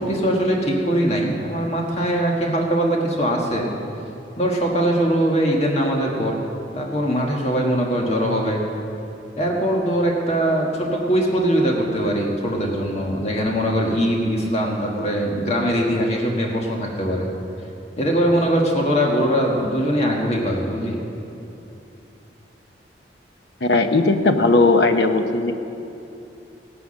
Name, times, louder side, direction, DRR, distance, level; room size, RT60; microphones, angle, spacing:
voice 1, 0.0-3.7 4.4-6.4 6.7-8.6 9.4-17.3 18.0-21.0, equal, 35° left, -1 dB, 1.6 m, -21 dB
voice 2, 23.6-25.5, left 3 dB, 70° left, 6 dB, 1.0 m, -17 dB
17.0 x 9.9 x 6.5 m, 2.8 s
head